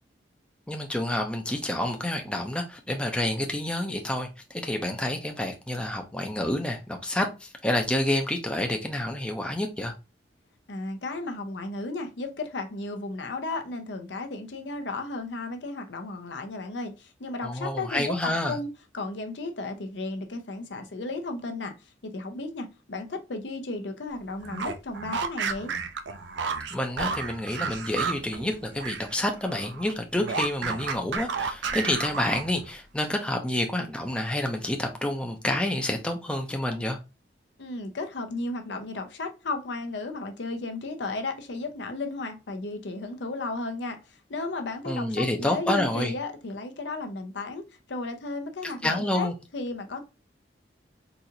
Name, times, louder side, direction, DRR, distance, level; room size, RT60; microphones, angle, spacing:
voice 1, 0.7-9.9 17.4-18.6 26.7-37.0 44.9-46.1 48.6-49.3, left 1 dB, 5° left, 0.4 m, -28 dB
voice 2, 10.7-18.7 18.9-21.7 22.0-25.7 37.6-44.0 44.3-47.6 47.9-50.0, left 2 dB, 70° left, 0.6 m, -34 dB
sound 1, 24.4-29.1 29.4-32.7, right 5 dB, 70° right, 0.5 m, -32 dB
4.0 x 2.5 x 2.8 m
head